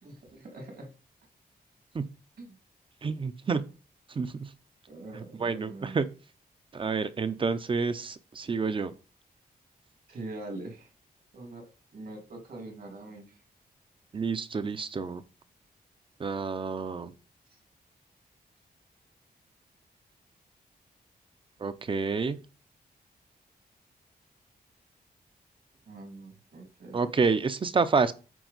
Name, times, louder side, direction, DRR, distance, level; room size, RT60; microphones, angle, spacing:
voice 1, 0.0-0.9 2.4-2.6 4.9-6.0 10.1-10.9 11.3-11.7 11.9-13.4 17.5-17.6 25.9-27.2, right 2 dB, 70° right, 2.1 m, -43 dB
voice 2, 3.0-3.7 4.1-4.5 5.4-6.1 6.7-8.9 14.1-15.2 16.2-17.1 21.6-22.4 26.9-28.1, right 4 dB, 30° right, 0.5 m, -28 dB
9.2 x 4.4 x 4.0 m
wide cardioid pair, 175°, 16 cm